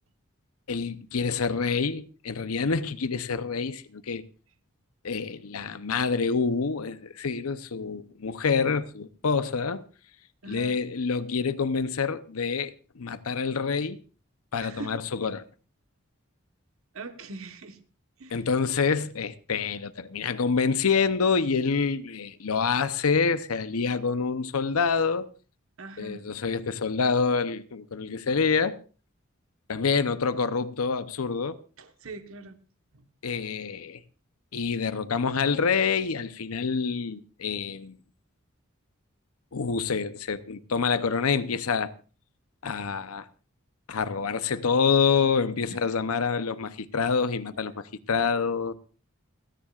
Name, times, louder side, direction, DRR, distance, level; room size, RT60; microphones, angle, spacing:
voice 1, 0.7-4.2 5.0-9.8 10.5-14.0 14.5-15.4 18.3-25.3 26.0-28.8 29.7-31.6 33.2-34.0 34.5-38.0 39.5-41.9 42.6-43.3 43.9-48.7, left 5 dB, 90° left, 0.7 m, -27 dB
voice 2, 10.4-10.8 14.6-15.0 16.9-17.8 18.2-18.4 25.8-26.2 31.8-32.6 32.9-33.1, right 3 dB, 75° right, 1.3 m, -41 dB
29.5 x 10.0 x 2.4 m
head